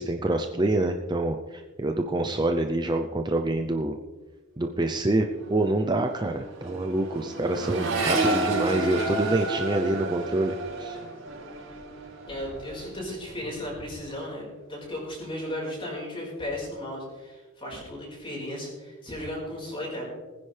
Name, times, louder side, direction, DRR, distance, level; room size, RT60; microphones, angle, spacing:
voice 1, 0.0-4.0 4.6-11.0, right 2 dB, 20° right, 4 dB, 0.6 m, -26 dB
Accelerating revving vroom, 4.9-5.2 5.4-12.9 13.3-13.9, right 2 dB, 80° right, 4.6 m, -31 dB
voice 2, 12.3-20.0, left 1 dB, 25° left, -3 dB, 4.9 m, -35 dB
20.5 x 10.0 x 3.4 m, 1.3 s
head